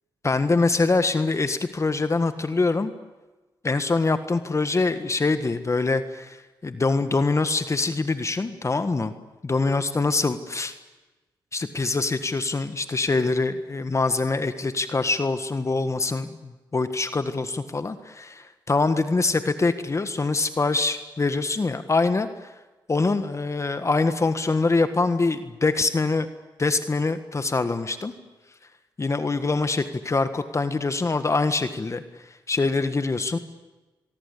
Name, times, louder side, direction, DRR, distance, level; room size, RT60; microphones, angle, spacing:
voice 1, 0.2-2.9 3.6-6.4 6.6-9.1 9.4-10.7 11.5-22.3 22.9-26.3 26.6-28.1 29.0-32.0 32.5-33.4, left 3 dB, 35° left, 10 dB, 1.6 m, -24 dB
25.0 x 23.0 x 8.5 m, 1.2 s
cardioid pair, 65°, 9 cm